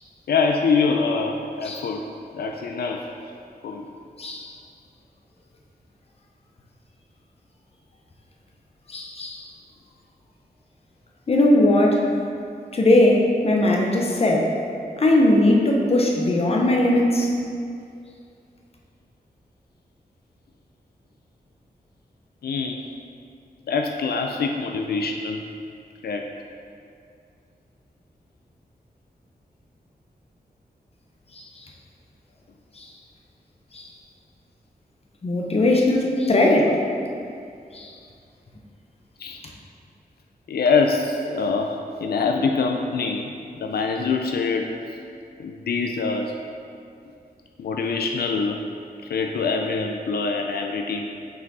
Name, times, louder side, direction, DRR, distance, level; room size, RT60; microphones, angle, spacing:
voice 1, 0.3-2.0 2.3-3.1 3.6-3.9 22.4-22.8 23.7-25.4 26.0-26.3 36.2-36.3 39.2-39.4 40.5-45.0 45.4-46.3 47.6-48.6 49.1-51.1, left 4 dB, 85° left, 3 dB, 0.4 m, -24 dB
voice 2, 4.2-4.5 8.9-9.4 11.3-12.1 12.7-14.5 15.0-17.3 32.8-32.9 33.7-33.9 35.2-36.7 37.7-37.9, left 1 dB, 40° left, 0 dB, 0.7 m, -19 dB
5.6 x 5.3 x 4.0 m, 2.4 s
wide cardioid pair, 165°, 16 cm